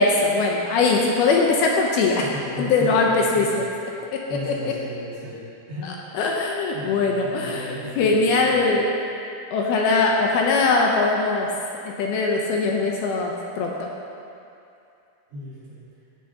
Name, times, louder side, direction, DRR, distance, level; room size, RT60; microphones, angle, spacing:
voice 1, 0.0-2.3 2.6-3.6 4.1-4.7 5.8-8.9 9.5-11.5 11.9-13.9, left 3 dB, 75° left, -1 dB, 2.5 m, -21 dB
voice 2, 2.2-3.7 4.3-5.9 6.7-8.7 15.3-15.8, equal, 70° right, -9 dB, 4.6 m, -35 dB
14.0 x 9.9 x 2.9 m, 2.6 s
omnidirectional pair, 4.9 m